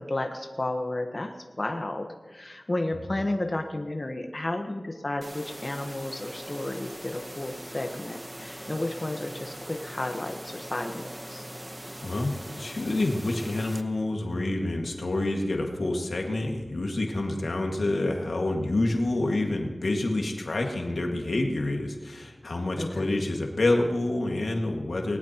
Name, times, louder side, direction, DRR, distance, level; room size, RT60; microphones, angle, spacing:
voice 1, 0.0-11.4 22.8-23.2, left 2 dB, 45° left, 4 dB, 1.2 m, -32 dB
sound 1, 5.2-13.8, right 1 dB, 15° right, 1.0 m, -41 dB
voice 2, 12.0-25.2, left 2 dB, 85° left, 1 dB, 1.9 m, -28 dB
20.0 x 19.0 x 3.0 m, 1.3 s
wide cardioid pair, 55°, 0 cm